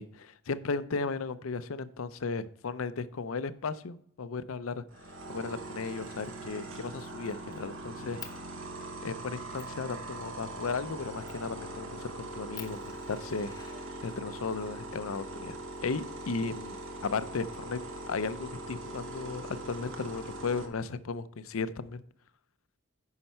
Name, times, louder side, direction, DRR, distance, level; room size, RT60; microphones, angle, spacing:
voice 1, 0.0-4.8 5.3-8.4 9.0-17.8 18.1-22.0, left 4 dB, 80° left, 14 dB, 0.6 m, -35 dB
sound 1, 4.9-20.7, right 2 dB, 70° right, 1.4 m, -42 dB
Fire, 6.0-6.3 6.7-7.6 8.2-8.4 9.0-9.1 9.6-9.8 11.2-11.5 12.0-12.1 12.5-14.3 15.4-16.3, left 6 dB, 15° left, 0.7 m, -49 dB
9.6 x 5.7 x 4.4 m, 0.64 s
head